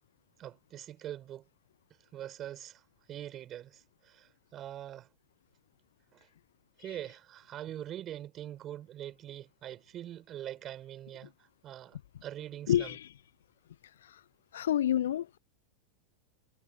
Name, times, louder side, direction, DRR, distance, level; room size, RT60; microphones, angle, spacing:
voice 1, 0.4-1.4 2.1-2.8 3.1-5.1 6.1-6.2 6.8-11.3 11.6-13.0, right 12 dB, 30° right, 4.6 m, -43 dB
voice 2, 12.7-13.1 14.0-14.2 14.5-15.4, left 11 dB, 60° left, 0.6 m, -29 dB
figure-of-eight pair, 90°, 0 cm